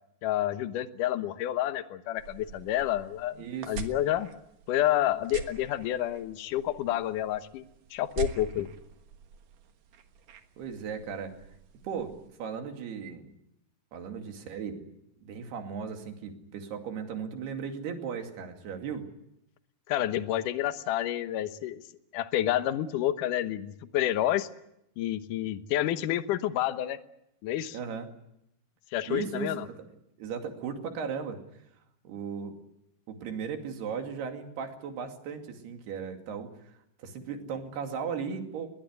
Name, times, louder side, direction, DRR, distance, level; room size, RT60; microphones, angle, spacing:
voice 1, 0.2-3.4 3.7-4.3 4.7-7.6 7.9-8.7 19.9-21.8 22.1-24.5 25.0-27.0 27.4-27.8 28.9-29.7, left 12 dB, 65° left, 10 dB, 2.3 m, -29 dB
sound 1, 2.2-12.3, right 7 dB, 60° right, 2.8 m, -44 dB
voice 2, 3.4-3.8 10.6-11.3 11.8-13.3 13.9-14.9 15.2-19.1 27.7-28.1 29.1-29.9 30.2-31.4 32.0-32.5 33.1-36.7 37.0-38.7, right 6 dB, 80° right, 4 dB, 4.4 m, -36 dB
21.5 x 20.5 x 9.5 m, 0.80 s
omnidirectional pair, 4.6 m